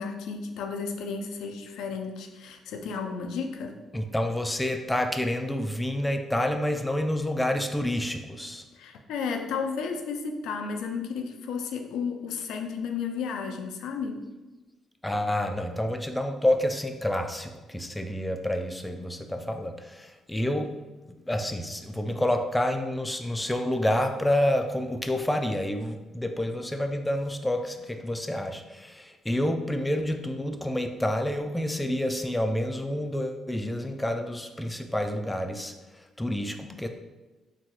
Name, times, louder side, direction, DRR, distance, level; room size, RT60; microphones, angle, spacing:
voice 1, 0.0-3.8 8.7-14.2, left 5 dB, 85° left, 4 dB, 0.3 m, -33 dB
voice 2, 3.9-8.6 15.0-20.7 21.3-36.9, left 1 dB, 10° left, 5 dB, 0.3 m, -28 dB
3.8 x 2.1 x 3.0 m, 1.2 s
cardioid pair, 90°, 0 cm